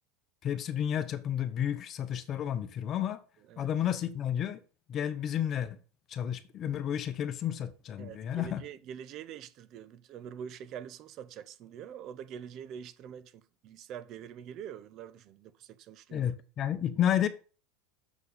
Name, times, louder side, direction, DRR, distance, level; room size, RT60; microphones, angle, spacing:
voice 1, 0.4-3.2 3.6-4.6 4.9-5.8 6.1-8.6 16.1-17.3, left 10 dB, 40° left, 0.9 m, -31 dB
voice 2, 8.0-16.3, right 8 dB, 50° right, 0.8 m, -45 dB
7.2 x 4.5 x 6.6 m
supercardioid pair, 115°, 0 cm